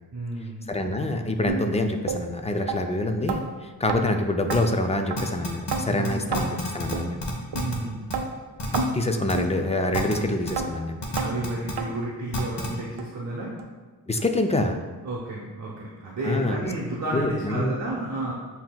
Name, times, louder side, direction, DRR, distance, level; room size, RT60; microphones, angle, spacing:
voice 1, 0.1-0.6 5.9-6.3 7.5-8.0 11.2-13.5 15.0-18.3, right 2 dB, 45° right, -5 dB, 0.8 m, -31 dB
voice 2, 0.7-7.3 8.9-11.0 14.1-14.8 16.2-16.6 17.1-17.7, left 2 dB, 15° left, 5 dB, 0.3 m, -26 dB
sound 1, 1.5-1.6 2.1-2.2 2.7-2.8 3.3-3.4 3.9-4.0 4.5-4.6 5.1-5.2 5.7-5.8 6.3-6.5 6.9-7.1 7.5-7.6 8.1-8.3 8.7-8.9 9.3-9.5 10.0-10.1 10.6-10.7 11.2-11.3 11.8-11.9 12.4-12.5 13.0-13.1 13.6-13.7 14.2-14.3, right 5 dB, 70° right, 0.5 m, -28 dB
sound 2, 4.5-4.6 5.2-5.8 6.0-6.1 6.3-6.9 7.2-7.8 8.1-8.2 8.6-8.8 9.3-9.4 9.9-10.1 10.5-10.6 11.0-11.7 12.3-12.7, left 1 dB, 70° left, 0.9 m, -30 dB
7.5 x 2.8 x 2.2 m, 1.4 s
wide cardioid pair, 75°, 42 cm